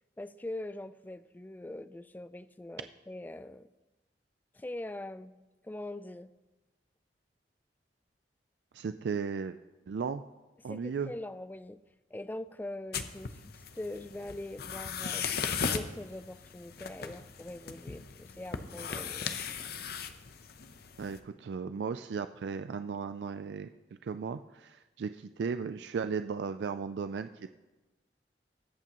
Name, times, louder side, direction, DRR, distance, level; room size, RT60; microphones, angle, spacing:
voice 1, 0.2-3.7 4.5-5.4 5.6-6.3 10.7-11.8 12.1-13.4 13.7-15.3 15.6-19.4, left 1 dB, 10° left, 13 dB, 0.3 m, -42 dB
voice 2, 8.7-9.6 9.9-10.2 10.6-11.1 21.0-23.7 24.0-27.5, right 5 dB, 75° right, 10 dB, 0.4 m, -36 dB
sound 1, 12.9-21.2, left 6 dB, 60° left, 0.7 m, -38 dB
20.5 x 8.4 x 3.0 m, 1.1 s
head